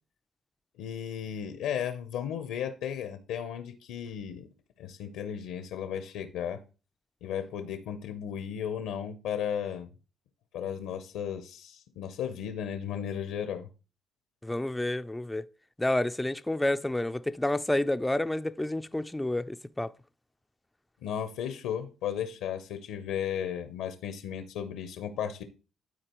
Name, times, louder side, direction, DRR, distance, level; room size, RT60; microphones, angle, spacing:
voice 1, 0.8-4.5 4.8-6.6 7.2-9.9 10.5-13.7 21.0-25.4, left 9 dB, 85° left, 0.7 m, -35 dB
voice 2, 14.4-15.5 15.8-19.9, left 1 dB, 10° left, 0.4 m, -29 dB
12.5 x 4.2 x 3.0 m
supercardioid pair, 75°, 0 cm